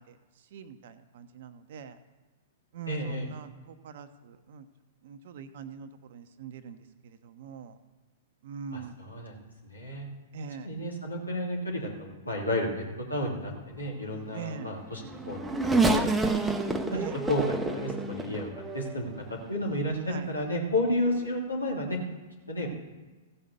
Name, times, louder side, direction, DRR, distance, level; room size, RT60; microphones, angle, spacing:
voice 1, 0.0-2.0 2.7-4.7 5.0-7.8 8.4-9.0 10.3-10.7 14.3-14.7 16.9-17.2 20.0-20.3, right 6 dB, 55° right, 10 dB, 0.9 m, -43 dB
voice 2, 2.9-3.3 8.7-9.3 9.6-10.1 10.6-12.8 13.1-15.5 15.9-16.3 17.3-18.5 18.7-22.0 22.5-22.7, left 1 dB, 85° left, -2 dB, 2.9 m, -31 dB
Race car auto racing / Accelerating revving vroom, 14.7-19.2 19.9-20.0 21.1-21.3, right 3 dB, 5° right, 0.9 m, -28 dB
15.5 x 5.6 x 6.8 m, 1.2 s
figure-of-eight pair, 105°, 0 cm